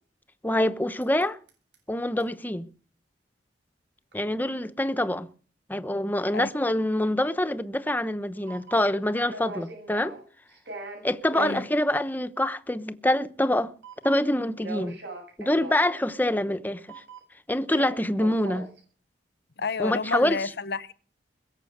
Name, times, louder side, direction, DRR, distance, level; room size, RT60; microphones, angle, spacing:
voice 1, 0.4-1.4 1.9-2.7 4.1-5.3 5.7-10.2 11.0-13.7 14.0-15.0 15.4-17.0 17.5-18.7 19.8-20.4, left 1 dB, 10° left, 0.8 m, -25 dB
sound 1, 1.0-1.2 1.5-1.7 2.2-2.3 4.1-4.2 8.1-8.2 8.5-10.2 10.5-11.7 13.8-14.3 14.6-15.9 16.9-17.3 17.7-18.8, right 3 dB, 75° right, 7.9 m, -40 dB
voice 2, 11.3-11.7 19.6-20.9, left 4 dB, 65° left, 1.0 m, -30 dB
21.5 x 7.5 x 7.9 m
head